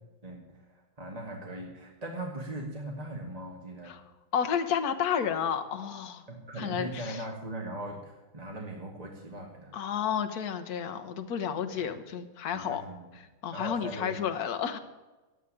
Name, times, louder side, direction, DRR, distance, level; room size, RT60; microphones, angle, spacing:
voice 1, 0.2-3.9 6.3-9.7 11.7-11.8 12.5-13.0 13.5-14.1, right 1 dB, 20° right, -1 dB, 1.8 m, -39 dB
voice 2, 4.3-6.2 6.6-7.2 9.7-12.8 13.4-14.8, left 8 dB, 50° left, 8 dB, 1.4 m, -31 dB
13.0 x 8.3 x 9.8 m, 1.2 s
omnidirectional pair, 2.3 m